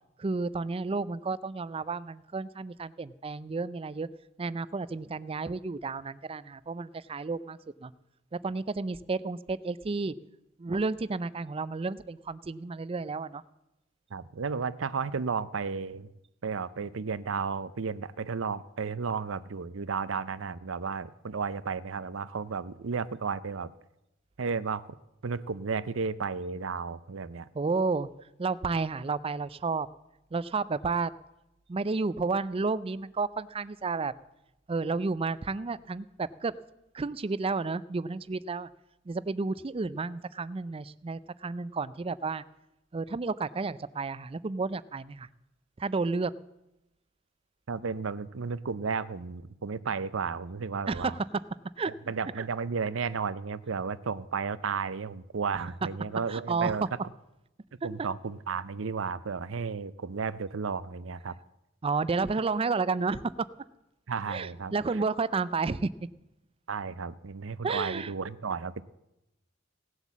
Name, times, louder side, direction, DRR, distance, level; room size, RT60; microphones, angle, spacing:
voice 1, 0.2-4.1 4.4-7.9 8.4-10.1 10.6-13.4 27.5-28.1 28.4-29.9 30.3-31.1 31.7-34.1 34.7-36.5 36.9-38.7 39.1-42.4 42.9-45.3 45.8-46.3 50.9-51.4 51.8-51.9 56.3-56.7 61.8-63.5 64.3-65.9 67.6-68.1, right 4 dB, 30° right, 18 dB, 0.4 m, -31 dB
voice 2, 14.1-16.1 16.4-23.7 24.4-24.8 25.2-27.5 47.7-51.1 52.1-56.9 57.8-61.4 64.1-64.7 66.7-68.8, right 5 dB, 85° right, 17 dB, 0.6 m, -33 dB
17.5 x 8.0 x 7.3 m, 0.92 s
head